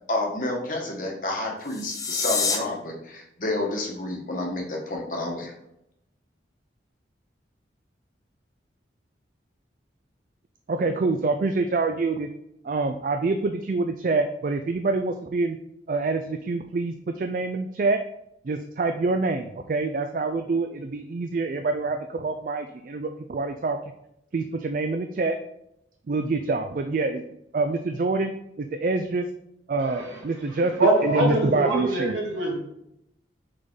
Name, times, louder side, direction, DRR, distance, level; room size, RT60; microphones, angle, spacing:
voice 1, 0.1-5.5, left 2 dB, 45° left, 0 dB, 1.2 m, -29 dB
sound 1, 1.6-2.6, left 4 dB, 20° left, 0.6 m, -27 dB
voice 2, 10.7-12.3 12.6-15.6 15.9-18.0 18.4-23.8 24.3-25.4 26.1-27.2 27.5-29.3 29.7-32.2, right 3 dB, 45° right, 7 dB, 0.3 m, -26 dB
voice 3, 30.5-32.6, right 1 dB, 85° right, -2 dB, 2.0 m, -24 dB
6.5 x 3.9 x 3.6 m, 0.80 s
head